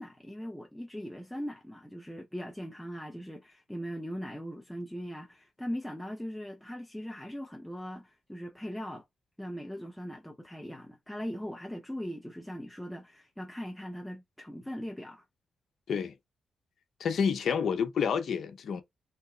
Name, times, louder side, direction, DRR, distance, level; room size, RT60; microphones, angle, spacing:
voice 1, 0.0-9.0 9.4-15.2, equal, 5° left, 0.5 m, -40 dB
voice 2, 17.0-18.8, left 6 dB, 65° left, 0.6 m, -29 dB
2.8 x 2.2 x 3.6 m
cardioid pair, 110°, 0 cm